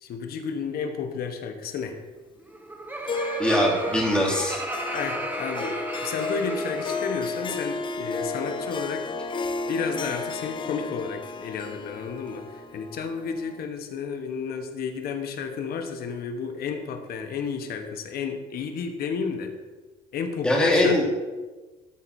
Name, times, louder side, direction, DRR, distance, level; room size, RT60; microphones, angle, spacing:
voice 1, 0.0-2.0 4.9-9.0 9.7-19.5 20.1-21.0, left 6 dB, 65° left, 5 dB, 1.2 m, -32 dB
Laughter, 2.4-7.6, right 2 dB, 10° right, 1.0 m, -34 dB
Harp, 3.1-13.6, left 3 dB, 30° left, 0.6 m, -33 dB
voice 2, 3.4-4.6 20.4-21.0, left 1 dB, 5° left, -5 dB, 2.9 m, -21 dB
13.0 x 4.4 x 4.3 m, 1.2 s
cardioid pair, 110°, 17 cm